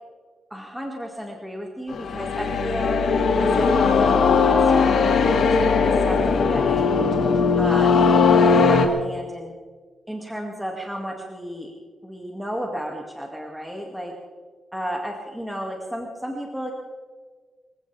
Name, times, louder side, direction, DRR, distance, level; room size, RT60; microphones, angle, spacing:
voice 1, 0.5-3.0 3.4-6.9 7.6-9.5 10.1-11.7 12.0-14.1 14.7-16.7, equal, 5° right, 0 dB, 2.3 m, -33 dB
sound 1, 1.9-8.9, left 5 dB, 70° left, 2.1 m, -19 dB
26.5 x 15.5 x 3.5 m, 1.5 s
cardioid pair, 110°, 0 cm